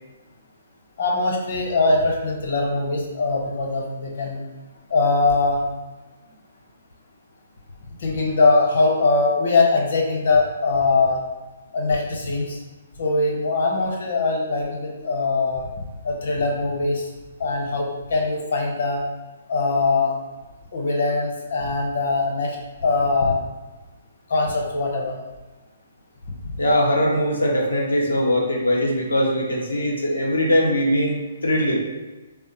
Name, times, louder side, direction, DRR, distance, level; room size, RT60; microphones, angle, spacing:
voice 1, 1.0-4.4 4.9-5.6 8.0-11.2 11.7-12.6 13.0-15.7 16.0-17.1 17.4-19.0 19.5-20.2 20.7-22.6 22.8-23.4 24.3-25.1, left 3 dB, 65° left, -1 dB, 0.8 m, -21 dB
voice 2, 26.6-31.8, equal, 90° left, -2 dB, 0.6 m, -21 dB
3.4 x 2.0 x 3.0 m, 1.2 s
hypercardioid pair, 135°, 0 cm